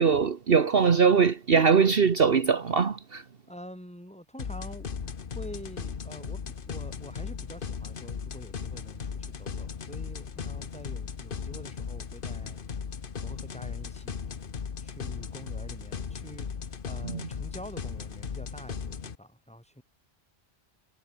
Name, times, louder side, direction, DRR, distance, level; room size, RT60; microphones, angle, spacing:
voice 1, 0.0-3.2 17.0-17.2, right 6 dB, 55° right, 1.3 m, -22 dB
voice 2, 3.5-4.9 5.3-6.4 6.7-12.6 13.2-14.3 14.8-19.8, equal, 5° left, 4.8 m, -46 dB
sound 1, 4.4-19.1, left 6 dB, 50° left, 1.2 m, -37 dB
omnidirectional pair, 1.2 m